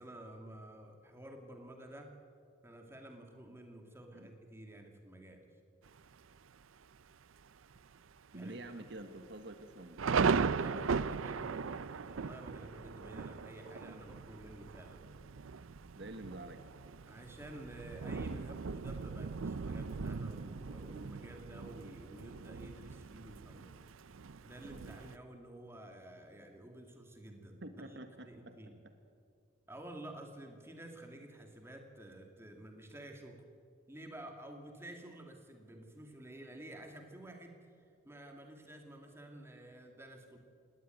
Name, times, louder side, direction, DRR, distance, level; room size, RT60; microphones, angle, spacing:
voice 1, 0.0-2.1 2.6-5.4 8.3-8.8 10.5-15.1 17.1-23.7 24.4-28.8 29.7-33.4 33.9-37.7 38.0-40.4, right 1 dB, 10° right, 3 dB, 2.4 m, -51 dB
Thunder, 5.9-6.4 6.9-7.0 7.3-7.8 8.1-8.2 8.9-25.2, right 5 dB, 80° right, 0.6 m, -38 dB
voice 2, 8.3-10.2 16.0-16.6 27.6-28.5 28.8-28.9, right 2 dB, 55° right, 8 dB, 1.2 m, -47 dB
18.5 x 18.5 x 9.3 m, 2.3 s
head